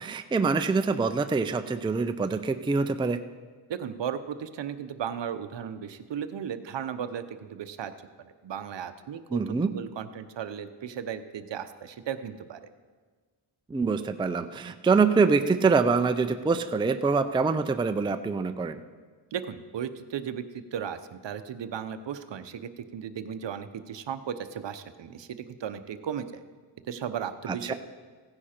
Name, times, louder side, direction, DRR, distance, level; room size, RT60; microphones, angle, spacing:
voice 1, 0.0-3.2 9.3-9.7 13.7-18.8 27.5-27.7, right 4 dB, 10° right, 9 dB, 0.4 m, -25 dB
voice 2, 3.7-7.9 8.2-9.4 9.7-12.6 19.3-26.4 26.9-27.7, right 8 dB, 60° right, 11 dB, 0.8 m, -35 dB
16.0 x 9.8 x 4.4 m, 1.5 s
cardioid pair, 95°, 48 cm